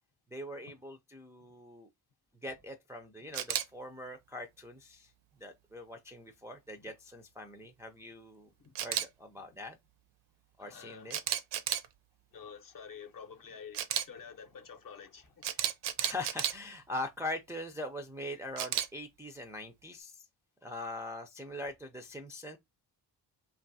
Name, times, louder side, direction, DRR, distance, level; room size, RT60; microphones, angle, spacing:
voice 1, 0.3-1.9 2.4-5.1 5.4-8.5 8.8-9.8 10.6-11.2 16.0-20.3 20.6-22.6, left 1 dB, 5° right, 0.3 m, -42 dB
Camera, 3.3-3.6 8.8-9.1 11.1-11.9 13.7-14.0 15.4-16.5 18.6-18.9, right 10 dB, 70° right, 0.5 m, -32 dB
voice 2, 10.6-11.2 12.3-15.7, left 6 dB, 50° left, 0.7 m, -49 dB
2.5 x 2.4 x 2.6 m
supercardioid pair, 60°, 44 cm